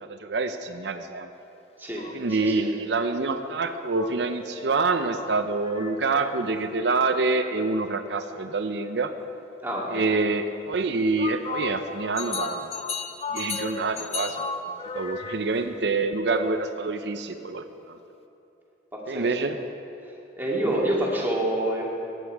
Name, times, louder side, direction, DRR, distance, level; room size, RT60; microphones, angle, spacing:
voice 1, 0.0-1.3 2.1-9.1 9.9-12.7 13.3-14.5 14.9-17.9 19.1-19.6, right 3 dB, 70° right, 8 dB, 0.6 m, -26 dB
sound 1, 2.0-2.8 3.9-6.5 11.2-15.7, left 4 dB, 35° left, 0.7 m, -35 dB
voice 2, 2.3-2.7 9.6-10.1 18.9-19.3 20.0-21.8, right 1 dB, 10° right, -4 dB, 2.2 m, -27 dB
16.0 x 10.0 x 4.7 m, 2.8 s
head